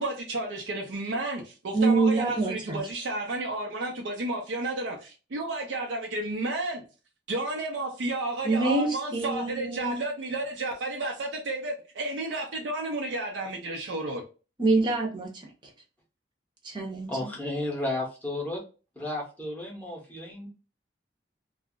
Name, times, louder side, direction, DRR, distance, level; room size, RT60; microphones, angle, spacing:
voice 1, 0.0-6.8 7.3-14.2, right 2 dB, 85° right, 1 dB, 0.5 m, -32 dB
voice 2, 1.7-2.5 8.4-10.0 14.6-15.5 16.6-17.3, right 3 dB, 25° right, 0 dB, 0.8 m, -25 dB
voice 3, 17.1-18.6 19.0-20.5, left 1 dB, 10° left, -2 dB, 0.9 m, -33 dB
2.3 x 2.0 x 3.6 m, 0.33 s
head